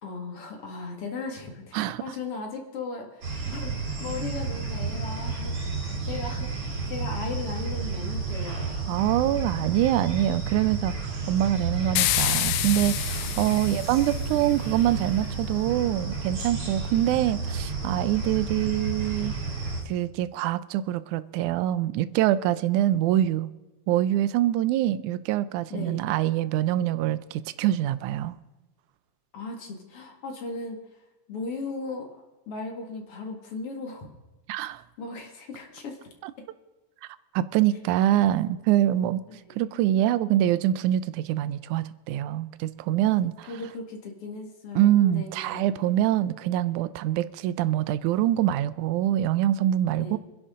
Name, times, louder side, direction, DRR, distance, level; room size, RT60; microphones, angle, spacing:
voice 1, 0.0-5.8 6.1-8.7 13.2-13.9 25.7-26.1 29.3-30.8 31.3-34.1 35.0-36.1 39.3-39.6 43.1-43.2 43.5-45.6 50.0-50.2, left 3 dB, 50° left, 2.6 m, -37 dB
sound 1, 3.2-19.8, right 4 dB, 40° right, 4.0 m, -31 dB
voice 2, 8.9-19.3 19.9-23.5 23.9-28.4 34.5-34.8 36.2-36.3 37.3-39.2 39.6-43.5 44.8-50.2, right 12 dB, 80° right, 2.0 m, -25 dB
sound 2, 12.0-14.4, left 15 dB, 85° left, 2.2 m, -28 dB
26.0 x 11.0 x 3.7 m
omnidirectional pair, 3.7 m